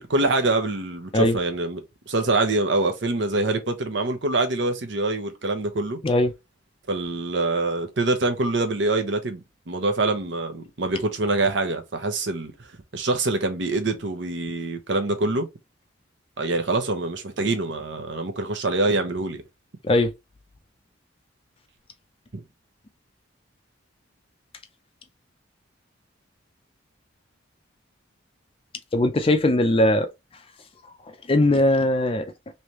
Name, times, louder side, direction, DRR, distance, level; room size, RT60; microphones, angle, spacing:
voice 1, 0.0-1.8 2.1-6.0 6.9-9.4 9.7-12.5 12.9-15.5 16.4-19.4 22.3-22.4, right 2 dB, 65° right, 0.8 m, -25 dB
voice 2, 28.9-30.1 31.3-32.3, left 1 dB, 30° left, 0.4 m, -19 dB
3.3 x 2.8 x 3.0 m
head